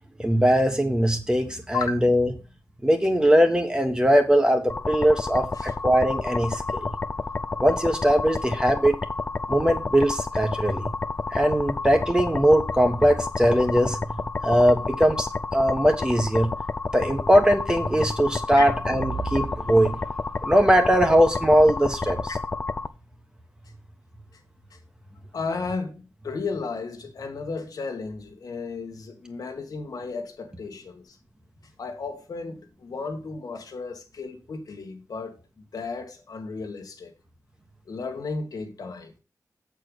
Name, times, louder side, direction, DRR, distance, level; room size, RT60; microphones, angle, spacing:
voice 1, 0.2-2.3 2.8-6.9 7.6-9.0 9.5-10.9 11.3-14.0 14.4-16.5 16.9-20.0 20.4-22.3, equal, 15° right, 1.4 m, -20 dB
sound 1, 4.7-22.9, left 3 dB, 30° left, 0.4 m, -30 dB
voice 2, 25.3-31.2 31.8-35.4 35.7-37.1 37.9-39.1, left 4 dB, 75° left, 1.6 m, -34 dB
7.7 x 4.6 x 6.3 m
wide cardioid pair, 145°, 6 cm